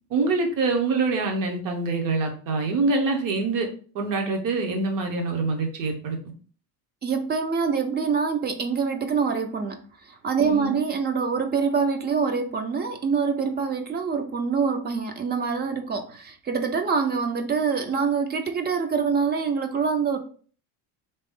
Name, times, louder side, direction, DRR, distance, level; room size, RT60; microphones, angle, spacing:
voice 1, 0.1-3.7 3.9-6.2 10.4-10.8, right 3 dB, 50° right, 1.0 m, -25 dB
voice 2, 7.0-9.8 10.1-20.2, right 5 dB, 25° right, 0.4 m, -25 dB
3.4 x 3.0 x 3.6 m
cardioid pair, 145°, 42 cm